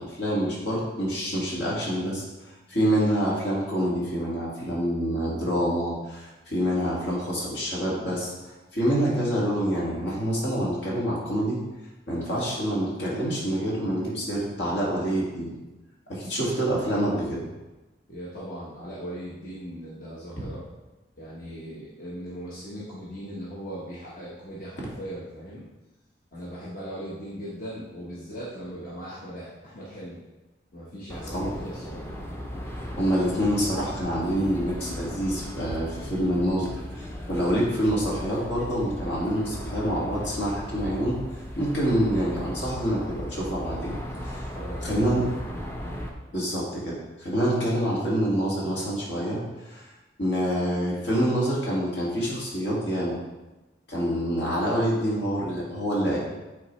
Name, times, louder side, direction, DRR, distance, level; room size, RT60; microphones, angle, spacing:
voice 1, 0.0-11.6 12.1-15.5 16.1-17.4 31.3-31.5 32.9-41.2 41.6-43.9 44.2-44.5 44.8-45.2 46.3-49.9 50.2-53.2 53.9-56.2, equal, 70° left, -5 dB, 2.0 m, -26 dB
voice 2, 18.1-20.6 21.2-25.6 26.3-30.2 30.7-32.0 44.3-45.4, equal, 50° left, -8 dB, 1.1 m, -39 dB
sound 1, 31.1-46.1, equal, 15° left, 0.6 m, -37 dB
8.7 x 3.9 x 3.1 m, 1.1 s
head